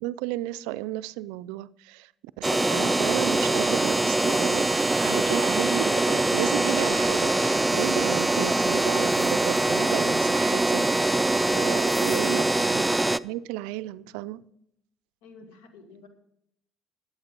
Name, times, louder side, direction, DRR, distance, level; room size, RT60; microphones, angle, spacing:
voice 1, 0.0-2.1 2.4-4.7 5.0-12.8 13.2-14.4, right 16 dB, 85° right, 0.4 m, -33 dB
sound 1, 2.4-13.2, right 2 dB, 10° right, 0.4 m, -23 dB
voice 2, 15.2-16.1, left 4 dB, 90° left, 1.9 m, -50 dB
12.5 x 8.2 x 5.2 m
supercardioid pair, 80°, 0 cm